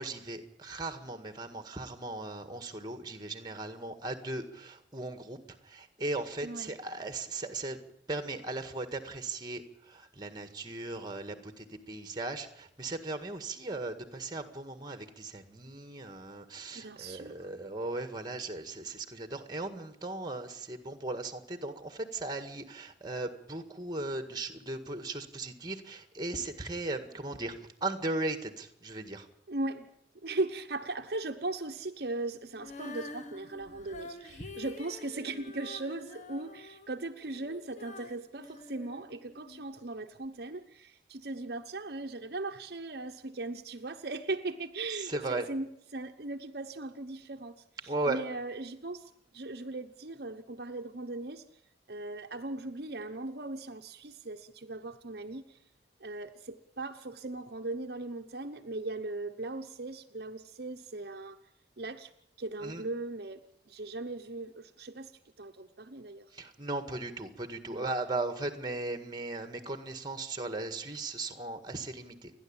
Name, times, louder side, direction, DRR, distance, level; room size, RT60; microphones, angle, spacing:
voice 1, 0.0-5.4 5.6-7.8 8.1-29.3 45.0-45.4 47.9-48.2 62.6-62.8 66.3-72.3, right 2 dB, 25° right, 9 dB, 1.8 m, -37 dB
voice 2, 6.4-6.7 16.7-17.5 29.5-29.9 30.2-51.4 51.9-55.6 56.0-61.4 61.8-62.1 62.4-63.4 63.7-65.1 65.4-66.3 67.7-67.9, right 2 dB, 60° right, 6 dB, 1.0 m, -38 dB
Female singing, 32.6-39.6 40.2-40.3, left 3 dB, 40° left, 1.5 m, -47 dB
29.5 x 11.0 x 8.8 m, 0.74 s
head